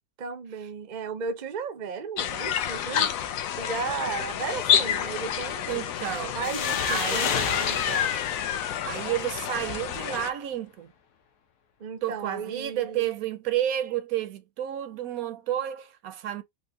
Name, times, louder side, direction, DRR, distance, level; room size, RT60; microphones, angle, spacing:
voice 1, 0.2-3.1 3.6-5.8 6.3-8.1 11.8-13.1, right 5 dB, 50° right, 0.5 m, -34 dB
sound 1, 2.2-10.3, left 9 dB, 70° left, 0.9 m, -29 dB
voice 2, 5.7-6.4 6.9-7.3 8.8-10.9 12.0-16.4, right 12 dB, 70° right, 1.0 m, -31 dB
sound 2, 6.4-9.8, left 7 dB, 85° left, 1.3 m, -31 dB
4.4 x 2.1 x 2.6 m
omnidirectional pair, 1.6 m